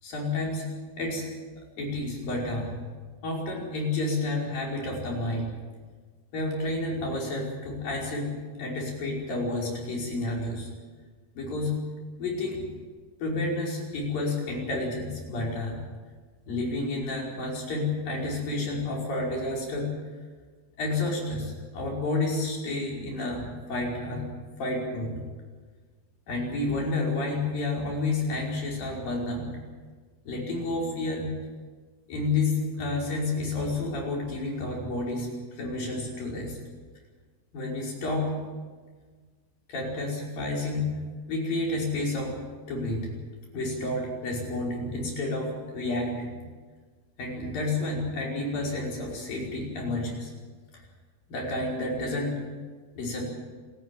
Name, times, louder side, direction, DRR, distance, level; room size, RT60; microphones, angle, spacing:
voice 1, 0.0-0.7 1.0-1.3 1.8-2.7 3.2-5.5 6.3-10.7 11.4-11.8 12.2-12.7 13.2-15.8 16.5-19.9 20.8-24.3 24.6-25.2 26.3-29.5 30.3-31.3 32.1-35.3 35.6-36.6 37.5-38.4 39.7-40.9 41.3-42.4 42.7-43.1 43.5-46.4 47.2-50.3 50.7-50.8 51.3-52.4 53.0-53.2, left 2 dB, 50° left, -2 dB, 6.8 m, -30 dB
28.0 x 14.0 x 9.1 m, 1.5 s
omnidirectional pair, 5.2 m